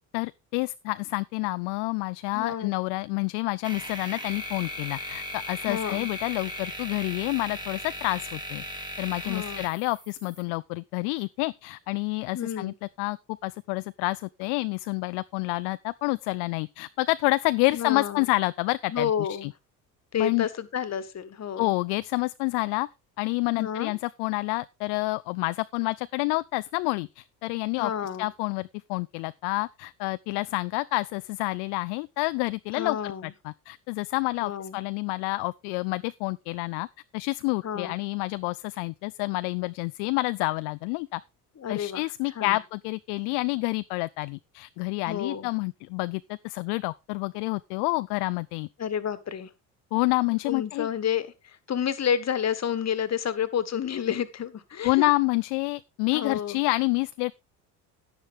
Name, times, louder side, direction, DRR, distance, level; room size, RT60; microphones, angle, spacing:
voice 1, 0.1-8.6 9.0-13.2 13.4-19.5 20.1-20.5 21.6-22.9 23.2-27.9 28.2-36.9 37.1-41.2 41.7-48.7 49.9-50.9 54.8-57.3, left 24 dB, 60° left, 0.5 m, -28 dB
voice 2, 2.3-2.7 5.6-6.1 9.2-9.7 12.3-12.7 17.7-18.3 18.9-19.5 20.1-21.7 23.6-23.9 27.8-28.3 32.7-33.3 34.4-34.8 37.6-37.9 41.6-42.0 42.3-42.6 45.1-45.5 48.8-49.5 50.4-55.1 56.1-56.6, left 8 dB, 35° left, 1.5 m, -30 dB
sound 1, 3.6-10.4, equal, 10° right, 2.6 m, -37 dB
10.5 x 10.0 x 3.5 m
hypercardioid pair, 60°, 45 cm